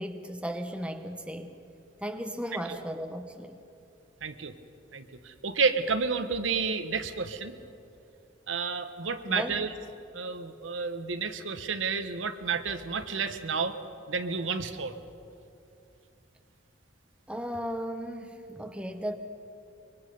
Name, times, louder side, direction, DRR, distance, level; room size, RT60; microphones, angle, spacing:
voice 1, 0.0-1.5 2.0-3.6 9.3-9.5 17.3-19.2, equal, 5° right, 6 dB, 0.9 m, -35 dB
voice 2, 4.2-4.5 4.9-7.5 8.5-9.7 10.1-13.8 14.1-14.9, right 5 dB, 80° right, 9 dB, 1.1 m, -30 dB
24.0 x 22.0 x 5.4 m, 2.7 s
head